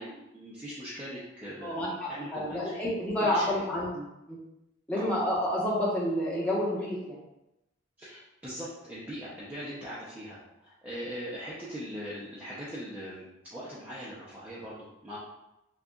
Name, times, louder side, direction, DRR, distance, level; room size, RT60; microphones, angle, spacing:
voice 1, 0.0-2.8 3.2-3.7 4.9-5.1 8.0-15.2, equal, 10° right, -9 dB, 0.7 m, -41 dB
voice 2, 1.6-4.4 4.9-7.2, left 1 dB, 5° left, -7 dB, 1.1 m, -29 dB
6.5 x 2.4 x 2.4 m, 0.92 s
head